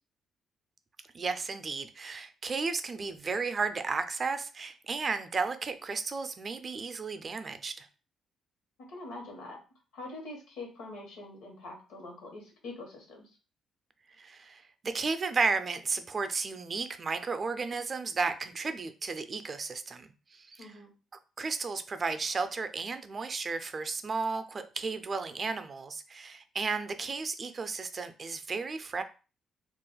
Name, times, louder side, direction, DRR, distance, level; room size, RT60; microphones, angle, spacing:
voice 1, 1.1-7.9 14.2-20.7 21.4-29.0, right 4 dB, 40° right, 9 dB, 0.4 m, -33 dB
voice 2, 8.9-9.6 9.9-13.3 20.6-20.9, left 2 dB, 90° left, 1 dB, 1.1 m, -44 dB
2.4 x 2.1 x 3.9 m, 0.34 s
cardioid pair, 90°, 0 cm